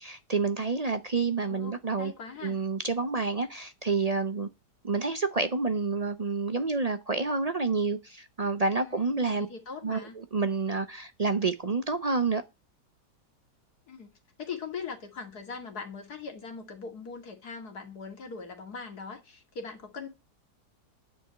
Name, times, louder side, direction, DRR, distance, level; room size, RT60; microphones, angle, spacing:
voice 1, 0.0-2.1 2.4-4.5 4.8-9.5 9.8-12.4, right 4 dB, 60° right, 0.4 m, -29 dB
voice 2, 1.5-2.6 8.8-10.2 13.9-20.1, left 5 dB, 65° left, 2.7 m, -41 dB
9.7 x 5.5 x 7.9 m
omnidirectional pair, 1.8 m